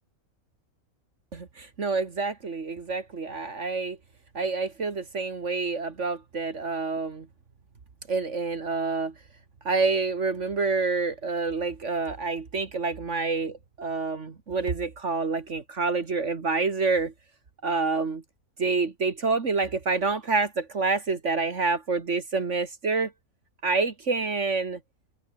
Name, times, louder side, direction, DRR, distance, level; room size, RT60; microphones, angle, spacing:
voice 1, 1.3-4.0 4.3-7.3 8.1-9.1 9.6-17.1 17.6-18.2 18.6-23.1 23.6-24.8, right 4 dB, 55° right, 2.1 m, -27 dB
open air
omnidirectional pair, 1.5 m